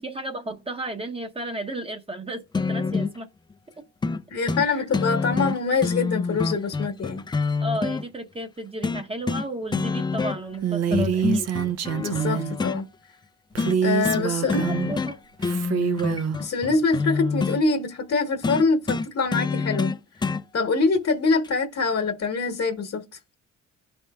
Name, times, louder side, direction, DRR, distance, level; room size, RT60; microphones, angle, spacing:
voice 1, 0.0-3.3 4.6-4.8 7.6-11.5 14.4-15.2, right 1 dB, 20° right, 0.8 m, -33 dB
sound 1, 2.5-3.2 4.0-4.2 4.5-4.7 4.9-8.0 8.8-9.5 9.7-10.6 10.9-12.8 13.6-13.8 14.0-14.2 14.5-15.1 15.4-17.6 18.4-20.4 21.4-21.5, left 4 dB, 15° left, 0.4 m, -26 dB
voice 2, 4.3-7.2 12.0-12.9 13.8-14.6 16.4-19.9 20.5-23.0, left 4 dB, 50° left, 1.1 m, -24 dB
Female speech woman speaking, 10.6-12.5 13.6-15.0 15.4-16.4, right 8 dB, 55° right, 0.6 m, -26 dB
12.0 x 4.4 x 2.3 m
cardioid pair, 90°, 30 cm